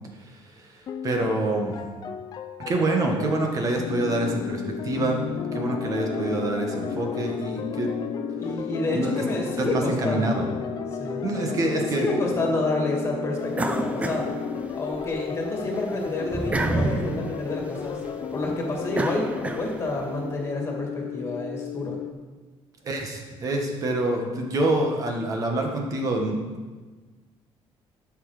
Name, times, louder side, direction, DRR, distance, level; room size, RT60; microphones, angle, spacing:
sound 1, 0.9-19.5, left 7 dB, 40° left, 0.6 m, -35 dB
voice 1, 1.0-1.8 2.7-5.2 5.5-7.9 8.9-9.2 9.6-10.5 11.2-12.1 22.8-26.4, right 2 dB, 35° right, 2 dB, 1.6 m, -26 dB
sound 2, 3.9-22.1, left 7 dB, 85° left, 0.7 m, -36 dB
voice 2, 8.4-10.5 11.0-11.2 11.7-14.3 14.7-18.0 18.3-22.0, left 2 dB, 25° left, 0 dB, 2.4 m, -29 dB
sound 3, 13.5-15.1 15.5-20.1, right 2 dB, 15° right, 0.6 m, -30 dB
12.0 x 6.2 x 5.0 m, 1.3 s
cardioid pair, 160°, 10 cm